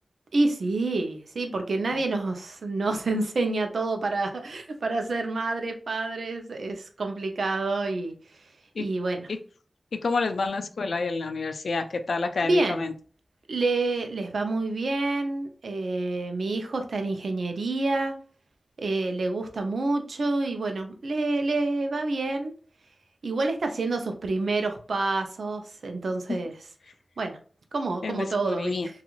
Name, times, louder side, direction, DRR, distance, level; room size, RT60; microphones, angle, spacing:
voice 1, 0.3-8.2 8.8-9.3 12.4-12.9 13.5-18.1 18.8-22.5 23.2-26.5 27.2-27.4 27.7-28.7, right 2 dB, 80° right, 5 dB, 0.5 m, -28 dB
voice 2, 9.9-12.9 26.3-26.4 28.0-28.9, left 3 dB, 85° left, 8 dB, 0.3 m, -29 dB
3.0 x 2.4 x 2.3 m, 0.42 s
wide cardioid pair, 85°, 0 cm